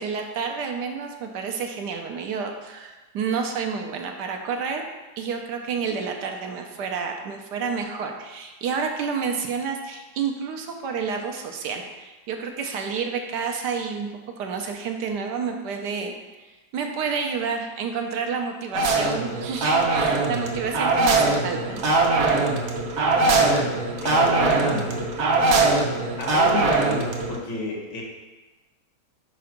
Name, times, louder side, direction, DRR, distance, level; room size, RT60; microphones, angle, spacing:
voice 1, 0.0-4.8 5.2-14.1 14.4-16.1 16.7-21.8, right 5 dB, 75° right, 3 dB, 1.4 m, -29 dB
sound 1, 18.7-27.4, right 3 dB, 50° right, 0.9 m, -21 dB
voice 2, 23.2-25.1 26.2-28.0, left 3 dB, 80° left, -2 dB, 2.1 m, -31 dB
5.1 x 4.8 x 5.8 m, 1.2 s
omnidirectional pair, 1.9 m